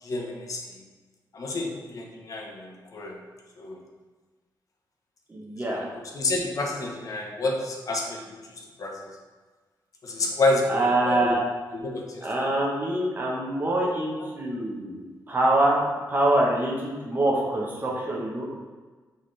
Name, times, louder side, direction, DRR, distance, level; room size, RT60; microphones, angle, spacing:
voice 1, 0.0-0.8 1.3-3.2 3.6-3.8 5.7-8.4 8.8-9.1 10.0-11.4 11.7-12.3, left 2 dB, 50° left, 0 dB, 0.7 m, -29 dB
voice 2, 5.3-5.9 10.7-11.4 12.2-15.0 15.3-15.8 16.1-18.5, right 1 dB, 25° right, -3 dB, 0.9 m, -25 dB
4.1 x 3.7 x 3.2 m, 1.4 s
wide cardioid pair, 130°, 8 cm